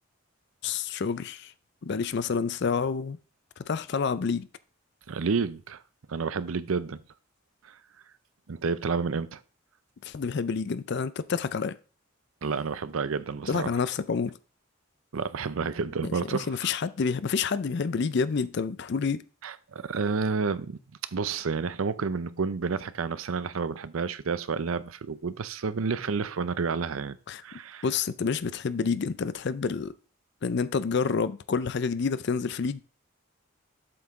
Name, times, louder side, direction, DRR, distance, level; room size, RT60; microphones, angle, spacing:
voice 1, 0.6-1.5 1.8-3.2 3.6-4.5 10.0-11.8 13.5-14.3 16.0-19.2 27.3-27.4 27.8-29.9 30.4-32.8, left 5 dB, 55° left, 0.4 m, -28 dB
voice 2, 5.1-5.8 6.1-7.0 7.6-7.8 8.5-9.4 12.4-13.7 15.1-16.7 19.4-20.8 21.1-27.2 27.4-27.9, right 5 dB, 85° right, 0.6 m, -30 dB
7.8 x 5.8 x 3.6 m
head